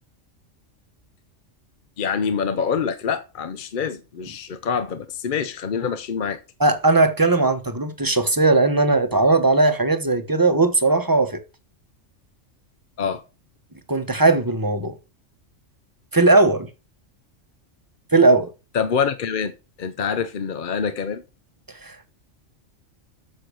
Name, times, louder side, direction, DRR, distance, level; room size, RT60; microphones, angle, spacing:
voice 1, 2.0-6.4 13.0-13.2 18.7-21.2, left 6 dB, 50° left, 0.7 m, -26 dB
voice 2, 6.6-11.4 13.9-14.9 16.1-16.7 18.1-18.5 21.8-22.1, right 3 dB, 20° right, 0.9 m, -18 dB
8.3 x 6.7 x 6.2 m
omnidirectional pair, 1.3 m